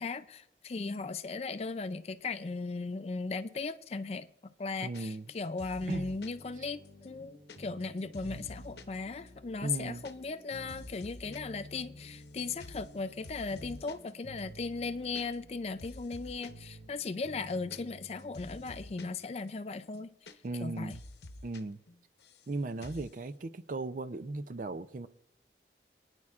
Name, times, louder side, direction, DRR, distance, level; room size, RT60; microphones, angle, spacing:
voice 1, 0.0-20.1 20.6-20.9, left 4 dB, 35° left, 0.4 m, -37 dB
voice 2, 4.8-5.3 5.9-6.1 9.6-10.1 20.4-21.0 21.4-21.8 22.5-25.1, right 2 dB, 45° right, 0.5 m, -37 dB
sound 1, 4.9-5.3 5.6-6.4 6.8-9.0 9.3-9.4 9.6-10.1 10.4-11.4 11.7-12.3 12.6-12.9 13.2-14.1 14.4-14.5 14.7-15.5 15.8-16.6 17.1-19.2 19.5-19.6 19.8-20.6 20.9-21.6 21.9-22.5 22.8-23.1, left 2 dB, 70° left, 0.8 m, -49 dB
sound 2, 5.8-19.1, equal, 90° right, 4.3 m, -52 dB
29.0 x 9.7 x 2.4 m
head